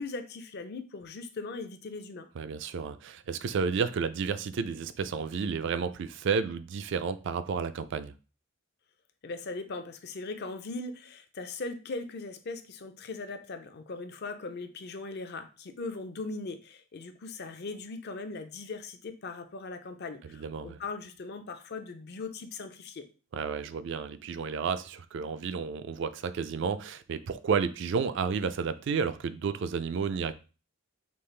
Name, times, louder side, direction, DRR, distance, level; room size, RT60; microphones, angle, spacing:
voice 1, 0.0-2.3 9.2-23.1, left 3 dB, 50° left, 0.5 m, -39 dB
voice 2, 2.4-8.1 20.3-20.8 23.3-30.3, right 5 dB, 60° right, 0.3 m, -31 dB
5.3 x 2.4 x 3.2 m
head